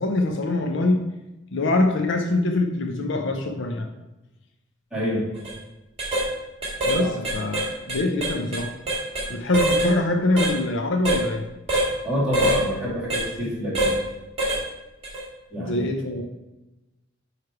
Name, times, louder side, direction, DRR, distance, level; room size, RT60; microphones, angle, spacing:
voice 1, 0.0-1.1 1.5-3.9 6.9-7.6 7.9-8.7 9.3-11.4 15.6-16.2, left 2 dB, 65° left, 4 dB, 0.7 m, -24 dB
voice 2, 4.9-5.3 7.0-7.1 12.0-14.0 15.5-15.8, equal, 5° right, -8 dB, 2.5 m, -27 dB
sound 1, 5.3-5.5 6.0-6.3 6.6-7.0 7.2-9.3 9.5-9.9 10.4-10.5 11.1-11.2 11.7-11.9 12.3-12.6 13.1-13.2 13.8-14.0 14.4-14.6 15.0-15.2, right 1 dB, 30° right, 1.9 m, -23 dB
9.5 x 3.3 x 4.7 m, 1.0 s
head